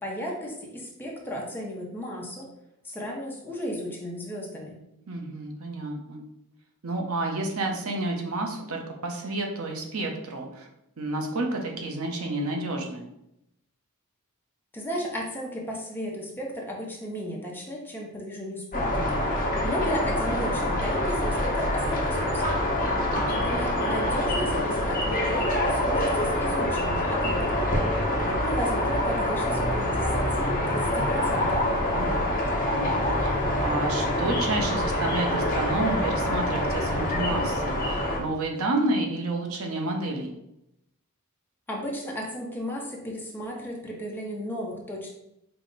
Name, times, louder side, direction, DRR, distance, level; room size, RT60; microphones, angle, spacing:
voice 1, 0.0-2.5 2.8-4.8 14.7-19.2 19.6-22.5 23.3-27.7 28.2-30.1 30.4-31.6 41.7-45.1, equal, 10° left, -3 dB, 0.7 m, -34 dB
voice 2, 5.1-6.2 6.8-10.7 11.0-13.1 23.0-23.5 31.9-32.2 32.7-32.9 33.2-40.3, right 2 dB, 85° right, 1 dB, 0.8 m, -30 dB
sound 1, 18.7-38.2, left 1 dB, 40° left, 0.9 m, -26 dB
4.8 x 2.1 x 3.9 m, 0.83 s
head